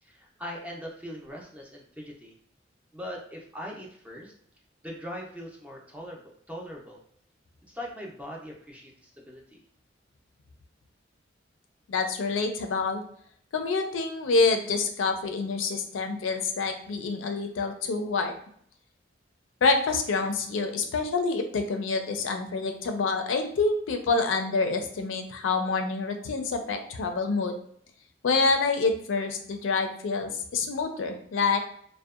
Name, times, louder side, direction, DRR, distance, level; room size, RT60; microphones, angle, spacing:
voice 1, 0.0-2.3 2.9-4.3 4.8-7.0 7.6-9.6, equal, 5° right, -1 dB, 0.4 m, -41 dB
voice 2, 11.9-13.0 13.5-18.3 19.6-27.6 28.2-31.6, left 4 dB, 90° left, 5 dB, 0.4 m, -27 dB
2.6 x 2.1 x 2.3 m, 0.64 s
head